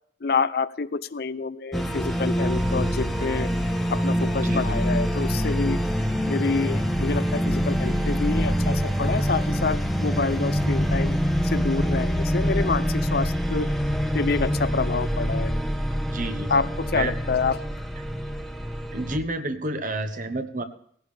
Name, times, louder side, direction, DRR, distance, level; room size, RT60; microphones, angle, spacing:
voice 1, 0.2-3.5 3.9-5.8 6.3-11.2 11.4-13.7 14.1-15.5 16.5-17.6, left 4 dB, 55° left, 15 dB, 0.6 m, -27 dB
sound 1, 1.7-19.2, equal, ahead, 1.0 m, -25 dB
voice 2, 4.4-4.9 16.1-16.5 16.9-17.1 18.9-20.6, right 2 dB, 45° right, 8 dB, 1.2 m, -30 dB
18.0 x 16.0 x 3.5 m, 0.65 s
head